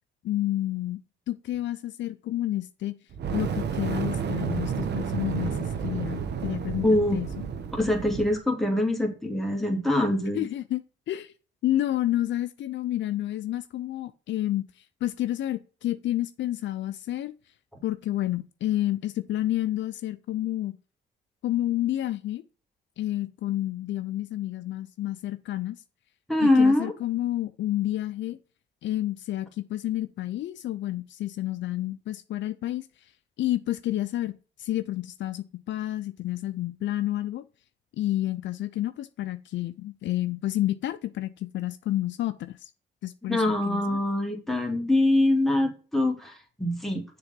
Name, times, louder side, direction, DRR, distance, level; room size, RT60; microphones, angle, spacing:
voice 1, 0.2-1.0 1.3-2.9 3.3-6.9 7.1-7.3 10.3-11.3 11.6-17.3 17.8-20.8 21.4-22.4 23.0-25.8 26.4-28.4 28.8-32.9 33.4-34.3 34.6-37.4 38.0-42.7 43.0-44.0, left 14 dB, 70° left, 0.6 m, -30 dB
Fire, 3.1-8.4, right 6 dB, 60° right, 1.1 m, -31 dB
voice 2, 6.8-7.2 7.7-10.4 26.3-26.9 43.3-47.0, left 1 dB, ahead, 2.2 m, -24 dB
6.9 x 3.7 x 5.2 m
cardioid pair, 90°, 20 cm